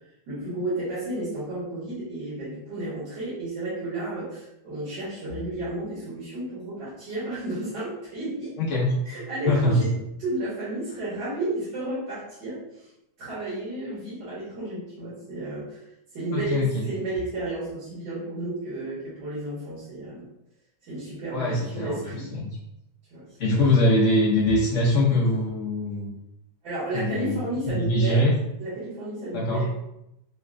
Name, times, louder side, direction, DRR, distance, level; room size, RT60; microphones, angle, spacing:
voice 1, 0.3-8.5 9.1-9.9 10.2-12.9 13.2-20.2 20.8-22.3 23.1-23.7 26.6-28.2 28.6-29.8, right 2 dB, 70° right, -10 dB, 2.0 m, -32 dB
voice 2, 8.6-8.9 9.5-9.9 16.3-16.8 21.3-22.5 23.4-26.1 26.9-27.4 27.7-28.3 29.3-29.6, left 1 dB, 65° left, -5 dB, 0.7 m, -23 dB
5.4 x 2.1 x 2.4 m, 0.85 s
omnidirectional pair, 1.9 m